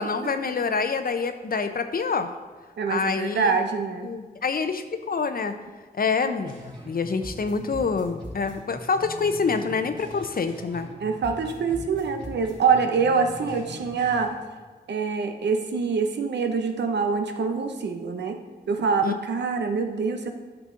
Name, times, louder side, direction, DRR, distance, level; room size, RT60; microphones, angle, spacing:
voice 1, 0.0-2.3 2.9-3.5 4.0-5.6 5.9-10.9 19.0-19.1, left 5 dB, 60° left, 9 dB, 0.7 m, -26 dB
voice 2, 2.8-4.1 11.0-14.3 14.9-18.4 18.7-20.3, right 5 dB, 90° right, 5 dB, 0.8 m, -25 dB
sound 1, 6.5-7.0 7.2-11.0 11.2-14.4, equal, 25° right, 2.7 m, -41 dB
10.5 x 6.0 x 3.8 m, 1.4 s
cardioid pair, 45°, 17 cm